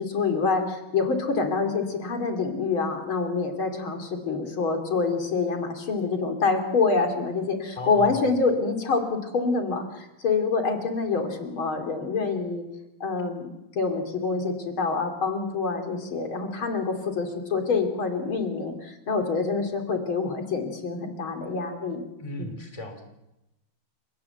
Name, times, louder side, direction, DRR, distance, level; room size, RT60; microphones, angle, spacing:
voice 1, 0.0-12.6 13.0-22.1 22.4-22.5, left 4 dB, 70° left, 5 dB, 3.7 m, -26 dB
voice 2, 7.8-8.4 22.2-23.1, left 1 dB, 15° left, 7 dB, 3.2 m, -36 dB
29.5 x 18.0 x 8.0 m, 0.95 s
omnidirectional pair, 2.4 m